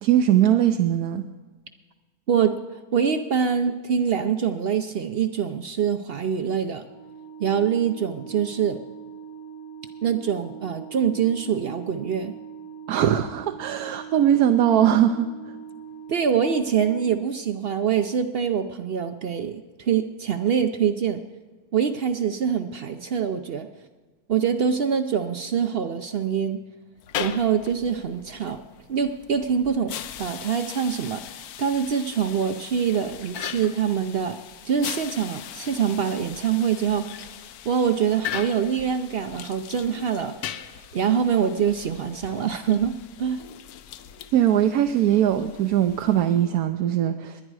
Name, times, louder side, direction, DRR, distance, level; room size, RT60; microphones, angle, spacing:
voice 1, 0.0-1.2 12.9-15.3 44.3-47.4, right 10 dB, 80° right, 6 dB, 1.1 m, -20 dB
voice 2, 2.9-6.8 7.4-8.8 10.0-12.3 16.1-21.2 21.7-23.7 24.3-26.6 27.2-28.6 28.9-34.4 34.6-37.3 37.7-43.4, right 7 dB, 65° right, 9 dB, 0.6 m, -24 dB
Organ, 6.8-17.7, right 7 dB, 25° right, 0.9 m, -42 dB
sound 1, 27.0-46.6, left 10 dB, 75° left, 1.1 m, -39 dB
21.0 x 10.0 x 4.7 m, 1.3 s
omnidirectional pair, 1.6 m